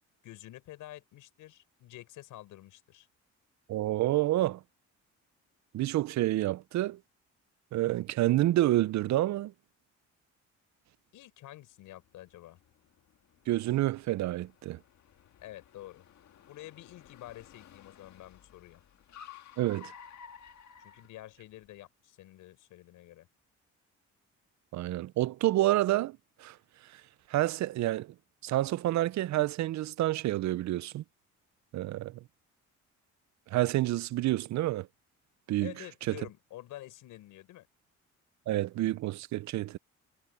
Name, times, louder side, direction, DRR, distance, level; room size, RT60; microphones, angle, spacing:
voice 1, 0.2-3.1 11.1-12.6 15.4-16.1 16.5-18.8 20.8-23.3 35.6-37.7, left 15 dB, 90° left, 5.7 m, -48 dB
voice 2, 3.7-4.6 5.7-7.0 7.7-9.5 13.5-14.8 19.6-19.9 24.7-26.6 27.3-28.1 28.4-31.0 31.7-32.2 33.5-34.9 35.5-35.7 36.1-36.2 38.5-39.8, right 15 dB, 65° right, 0.5 m, -28 dB
Car, 11.9-21.7, left 8 dB, 65° left, 1.8 m, -54 dB
cardioid pair, 90°, 30 cm